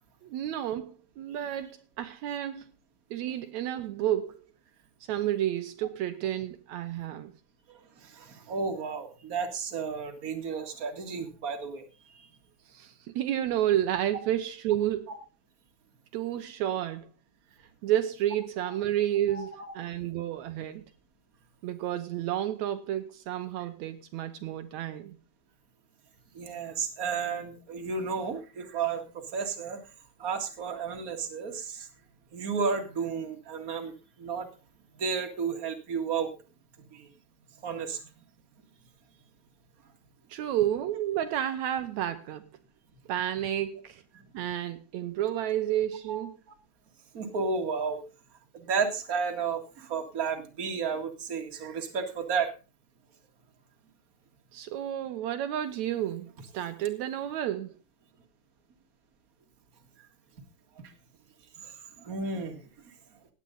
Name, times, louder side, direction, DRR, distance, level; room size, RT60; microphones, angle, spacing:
voice 1, 0.2-2.6 3.1-4.4 5.1-7.3 12.7-15.1 16.1-17.1 17.8-20.8 21.6-25.2 40.3-42.4 43.1-44.0 44.3-46.4 54.5-57.7, right 11 dB, 75° right, 2.1 m, -31 dB
voice 2, 8.0-11.8 15.1-15.2 19.3-19.7 26.3-29.8 30.2-31.9 32.3-33.9 34.2-34.5 35.0-36.3 36.9-37.1 37.6-38.0 46.1-46.2 47.1-48.0 48.5-52.5 60.8-60.9 61.6-61.7 62.0-62.6, right 5 dB, 30° right, 2.1 m, -32 dB
17.0 x 9.6 x 3.9 m
omnidirectional pair, 3.4 m